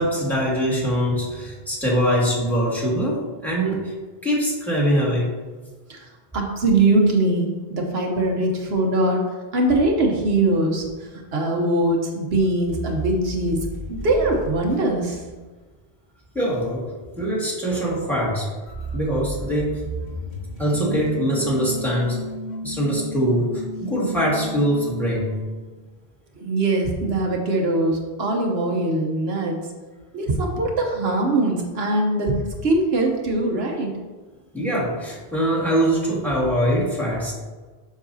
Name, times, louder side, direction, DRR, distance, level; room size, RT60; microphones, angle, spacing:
voice 1, 0.0-3.9 4.2-5.3 16.3-16.8 17.2-18.5 18.9-19.8 20.6-22.2 22.6-23.5 23.8-25.3 34.5-37.3, equal, ahead, -4 dB, 1.9 m, -22 dB
voice 2, 6.3-9.2 9.5-13.6 13.9-15.2 26.4-29.6 30.1-32.4 32.6-33.9, right 2 dB, 80° right, 1 dB, 1.2 m, -22 dB
sound 1, 12.7-15.7 18.7-22.1, right 1 dB, 45° left, 1.5 m, -34 dB
sound 2, 20.7-25.7, left 1 dB, 65° left, 0.7 m, -34 dB
7.4 x 6.4 x 2.7 m, 1.4 s
omnidirectional pair, 1.0 m